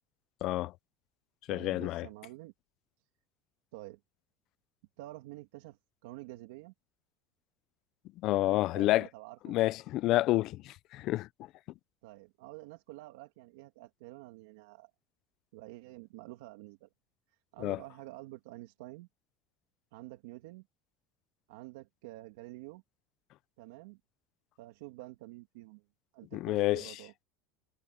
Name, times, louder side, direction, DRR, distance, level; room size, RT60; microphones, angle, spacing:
voice 1, 0.4-0.7 1.5-2.1 8.2-9.1 9.5-11.3 17.6-17.8 26.3-26.9, left 17 dB, 40° left, 0.5 m, -29 dB
voice 2, 1.5-2.5 3.7-4.0 5.0-6.7 8.4-9.6 12.0-14.9 15.5-16.9 17.3-19.1 19.9-20.7 21.5-22.8 23.6-24.0 24.6-25.8 26.1-27.1, right 19 dB, 90° right, 2.2 m, -48 dB
cardioid pair, 170°, 0 cm